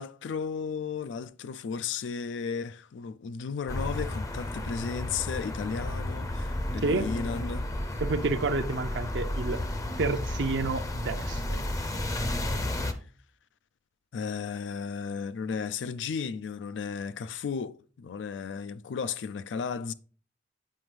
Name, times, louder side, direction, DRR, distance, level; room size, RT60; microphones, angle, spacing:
voice 1, 0.0-7.7 14.1-19.9, left 6 dB, 85° left, 0.4 m, -34 dB
sound 1, 3.7-12.9, left 1 dB, 20° left, 0.5 m, -32 dB
voice 2, 8.0-9.6 10.0-11.4, right 3 dB, 70° right, 0.5 m, -29 dB
7.6 x 5.1 x 3.2 m
head